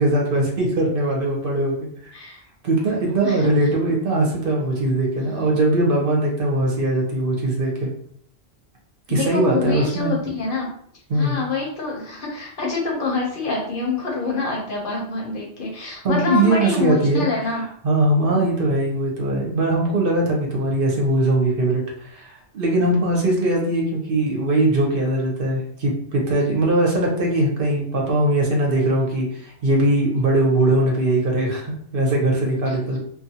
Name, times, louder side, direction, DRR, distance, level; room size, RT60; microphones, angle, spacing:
voice 1, 0.0-1.7 2.6-7.9 9.1-10.1 11.1-11.4 16.0-17.5 17.8-33.0, right 1 dB, 55° right, -1 dB, 0.9 m, -20 dB
voice 2, 5.2-5.5 9.1-10.7 11.1-17.6 18.3-18.5 22.7-23.0 32.7-33.0, left 3 dB, 55° left, -2 dB, 0.8 m, -26 dB
2.5 x 2.3 x 2.7 m, 0.63 s
omnidirectional pair, 1.1 m